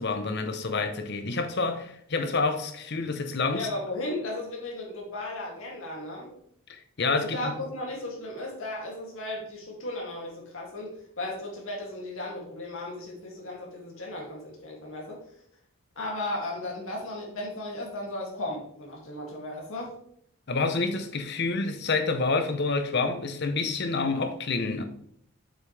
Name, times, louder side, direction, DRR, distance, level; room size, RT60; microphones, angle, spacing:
voice 1, 0.0-3.7 6.7-7.5 20.5-24.8, left 3 dB, 50° left, 0.8 m, -28 dB
voice 2, 3.5-6.3 7.2-15.2 16.0-19.9, left 1 dB, 65° left, 2.3 m, -35 dB
7.2 x 6.2 x 3.3 m
head